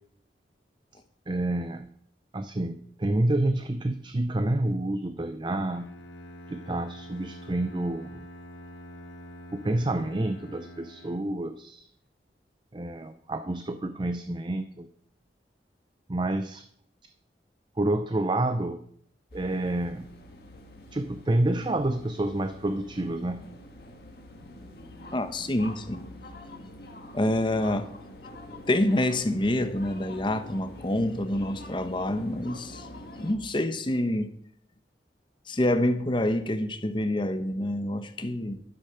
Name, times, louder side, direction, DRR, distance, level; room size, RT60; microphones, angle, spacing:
voice 1, 1.3-1.9 2.3-5.9 6.5-8.1 9.5-11.9 12.7-14.9 16.1-16.6 17.8-18.8 19.3-20.1 20.9-23.4, right 1 dB, 25° right, 10 dB, 0.5 m, -28 dB
Bowed string instrument, 5.7-11.6, equal, 90° left, 1.2 m, -46 dB
sound 1, 19.3-33.4, left 1 dB, 60° left, 1.8 m, -45 dB
voice 2, 25.1-26.1 27.1-27.9 28.7-32.9 33.2-34.3 35.5-38.6, left 1 dB, 25° left, 9 dB, 0.9 m, -27 dB
11.5 x 8.7 x 5.7 m, 0.67 s
head